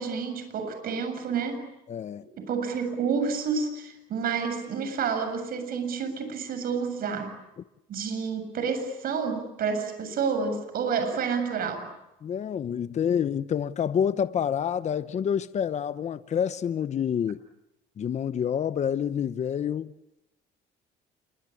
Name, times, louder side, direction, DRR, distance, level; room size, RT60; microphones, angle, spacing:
voice 1, 0.0-1.7 2.4-7.3 7.9-11.9, right 5 dB, 60° right, 7.3 m, -29 dB
voice 2, 1.9-2.2 12.2-17.4 18.0-19.9, left 8 dB, 40° left, 1.0 m, -28 dB
28.5 x 24.5 x 8.6 m
cardioid pair, 110°, 17 cm